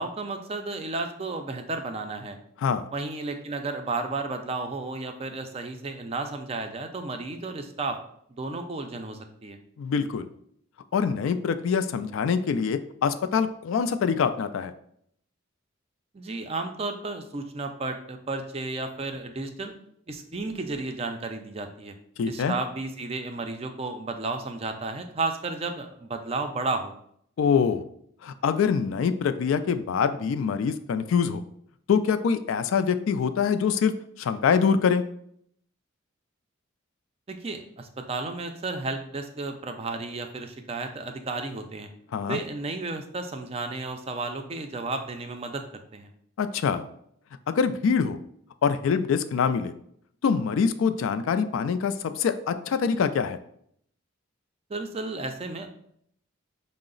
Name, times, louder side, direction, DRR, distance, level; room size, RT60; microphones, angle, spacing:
voice 1, 0.0-2.4 2.9-8.0 8.3-9.6 16.1-19.7 20.1-21.9 22.3-26.9 37.3-41.9 42.3-46.1 54.7-55.7, right 3 dB, 30° right, 6 dB, 0.4 m, -33 dB
voice 2, 9.8-10.3 10.9-14.7 22.2-22.5 27.4-27.9 28.2-31.4 31.9-35.0 42.1-42.4 46.4-46.8 47.5-48.2 48.6-49.7 50.2-53.4, left 6 dB, 75° left, 11 dB, 0.3 m, -24 dB
5.5 x 2.0 x 3.8 m, 0.68 s
head